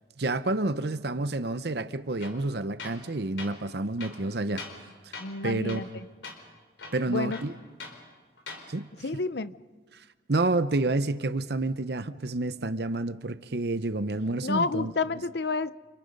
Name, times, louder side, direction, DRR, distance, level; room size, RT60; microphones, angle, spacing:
voice 1, 0.2-4.7 5.0-5.1 5.4-6.0 6.9-7.5 8.7-8.9 10.3-14.9, right 2 dB, 60° right, 0.8 m, -29 dB
Tools, 2.2-2.4 2.8-3.1 3.4-3.6 4.0-4.9 5.1-5.4 5.7-6.0 6.2-6.4 6.8-8.0 8.4-8.7, left 4 dB, 85° left, 4.3 m, -42 dB
voice 2, 5.2-6.1 7.1-7.4 9.0-9.5 14.4-15.7, left 4 dB, 60° left, 0.7 m, -30 dB
29.5 x 28.0 x 5.4 m
head